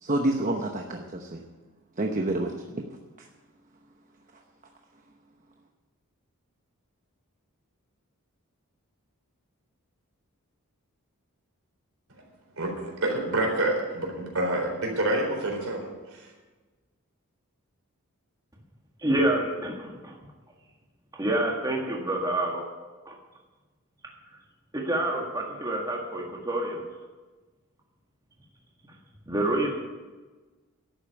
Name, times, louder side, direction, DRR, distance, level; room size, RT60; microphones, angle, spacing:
voice 1, 0.0-1.4 2.0-2.8, right 1 dB, 35° right, 3 dB, 0.9 m, -28 dB
voice 2, 12.6-16.2, right 1 dB, 70° right, 1 dB, 4.0 m, -28 dB
voice 3, 19.0-20.2 21.1-22.7 23.1-23.2 24.7-26.8 29.3-29.8, right 1 dB, 15° right, -1 dB, 1.8 m, -27 dB
12.0 x 8.8 x 8.8 m, 1.3 s
head